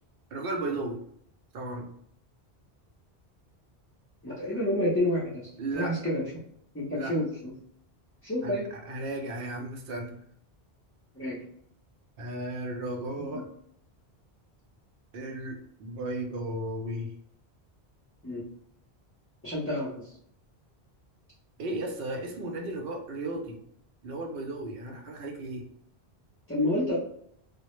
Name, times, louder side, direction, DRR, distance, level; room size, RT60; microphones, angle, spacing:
voice 1, 0.3-1.0 1.5-1.9 5.6-5.9 6.9-7.2 8.4-8.6 8.9-10.2 12.2-13.4 15.1-17.1 21.6-23.6 24.0-25.7, right 2 dB, 70° right, 2 dB, 0.7 m, -35 dB
voice 2, 4.2-6.2 6.7-7.5 8.2-8.6 11.2-11.4 13.2-13.4 18.2-18.4 19.4-19.9 26.5-26.9, left 1 dB, 20° left, -9 dB, 0.4 m, -29 dB
2.1 x 2.0 x 2.9 m, 0.67 s
omnidirectional pair, 1.1 m